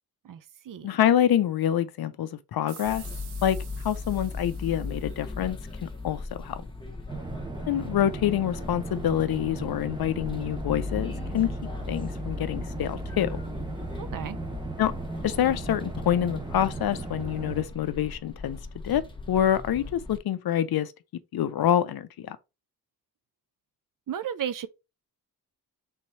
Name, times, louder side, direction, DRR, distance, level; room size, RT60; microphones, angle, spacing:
voice 1, 0.2-0.9 14.0-14.4 24.1-24.7, right 9 dB, 55° right, 0.5 m, -34 dB
voice 2, 0.8-3.0 3.4-3.6 3.8-6.6 7.7-11.5 11.9-13.4 14.8-14.9 15.2-18.6 18.8-20.9 21.3-22.4, left 10 dB, 65° left, 0.6 m, -26 dB
sound 1, 2.7-6.0, right 8 dB, 75° right, 0.8 m, -49 dB
sound 2, 2.8-20.2, left 3 dB, 10° left, 1.0 m, -38 dB
sound 3, 7.1-17.7, right 3 dB, 10° right, 0.8 m, -37 dB
3.5 x 3.0 x 4.2 m
cardioid pair, 60°, 40 cm